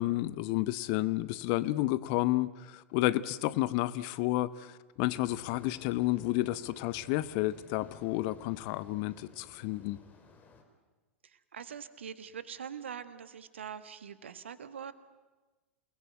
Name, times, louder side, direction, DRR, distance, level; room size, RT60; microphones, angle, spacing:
voice 1, 0.0-10.0, left 17 dB, 45° left, 16 dB, 0.9 m, -31 dB
sound 1, 5.1-10.6, left 4 dB, 25° left, 4.3 m, -57 dB
voice 2, 11.2-14.9, right 7 dB, 65° right, 13 dB, 1.6 m, -43 dB
29.0 x 20.0 x 9.3 m, 1.2 s
figure-of-eight pair, 90°, 7 cm